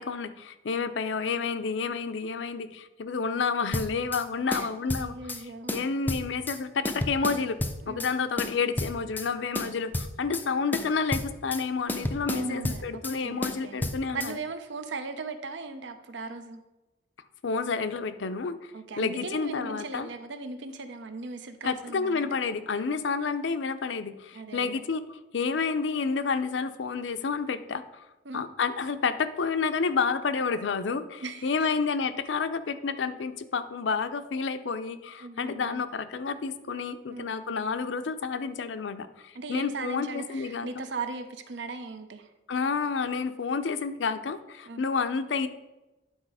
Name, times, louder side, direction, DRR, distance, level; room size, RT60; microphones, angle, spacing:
voice 1, 0.0-5.3 5.7-7.6 7.9-14.3 17.4-18.7 19.0-20.1 21.6-28.0 28.3-40.7 42.5-45.5, left 5 dB, 80° left, 11 dB, 0.5 m, -30 dB
sound 1, 3.7-4.2 4.5-5.4 5.7-6.6 6.9-8.1 8.4-9.3 9.6-10.5 10.7-11.6 11.9-13.2 13.4-14.3, left 1 dB, 10° left, 0.4 m, -32 dB
voice 2, 5.0-5.8 7.8-8.1 12.3-13.8 14.1-16.6 18.7-22.4 24.3-24.8 28.3-28.4 31.2-31.7 35.2-35.8 37.1-37.3 39.3-42.3 44.7-44.8, right 3 dB, 75° right, 8 dB, 0.7 m, -38 dB
9.7 x 4.1 x 4.8 m, 1.0 s
head